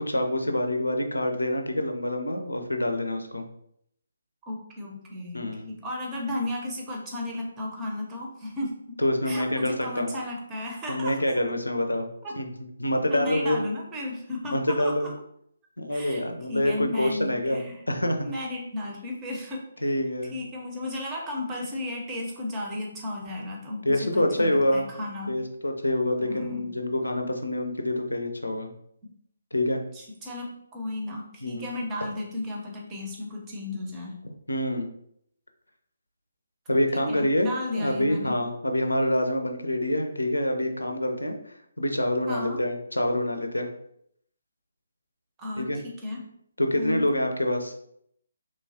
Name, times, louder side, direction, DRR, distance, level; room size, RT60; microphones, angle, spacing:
voice 1, 0.0-3.5 5.3-5.7 9.0-10.1 10.9-12.1 12.4-12.5 12.8-13.6 14.5-15.1 15.8-17.6 17.9-18.3 19.8-20.3 23.8-24.9 25.3-28.7 29.5-29.8 31.4-31.7 34.5-34.9 36.7-43.7 45.6-45.8 46.6-47.7, left 1 dB, 85° left, 5 dB, 0.4 m, -26 dB
voice 2, 4.5-9.0 9.2-11.2 12.2-12.3 13.1-15.1 15.9-17.8 18.2-19.8 20.3-25.4 26.2-26.7 29.9-34.2 36.9-38.3 42.3-42.6 45.4-46.2 46.7-47.0, left 1 dB, 15° right, -2 dB, 0.7 m, -34 dB
2.9 x 2.3 x 2.7 m, 0.71 s
figure-of-eight pair, 145°, 0 cm